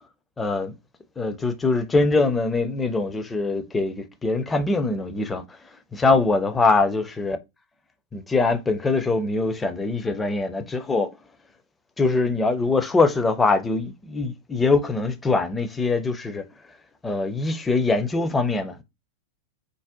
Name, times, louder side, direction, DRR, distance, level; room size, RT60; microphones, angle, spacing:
voice 1, 0.4-0.7 1.2-5.4 5.9-7.4 8.1-11.1 12.0-16.5 17.0-18.8, left 3 dB, 15° left, 0.4 m, -23 dB
2.6 x 2.0 x 3.6 m
figure-of-eight pair, 90°, 0 cm